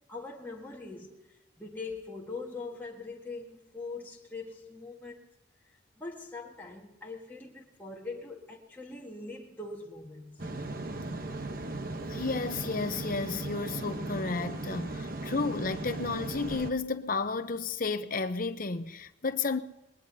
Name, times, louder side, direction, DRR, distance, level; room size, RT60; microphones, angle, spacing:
voice 1, 0.1-5.2 6.0-10.5, left 3 dB, 10° left, 1.6 m, -42 dB
sound 1, 10.4-16.7, right 2 dB, 45° right, 1.0 m, -37 dB
voice 2, 12.1-19.6, left 4 dB, 45° left, 0.8 m, -32 dB
21.0 x 20.0 x 2.8 m
head